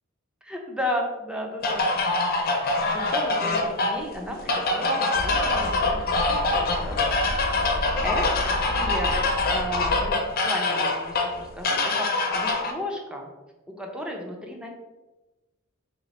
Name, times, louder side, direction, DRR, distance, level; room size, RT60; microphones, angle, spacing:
voice 1, 0.4-2.2 2.9-6.0 6.3-7.0 7.7-9.1 9.5-13.3 13.7-14.7, left 1 dB, 5° right, 1 dB, 0.5 m, -34 dB
sound 1, 1.6-12.7, left 2 dB, 45° left, 0.6 m, -24 dB
sound 2, 5.1-10.1, left 1 dB, 85° left, 0.7 m, -33 dB
2.9 x 2.8 x 4.1 m, 1.1 s
head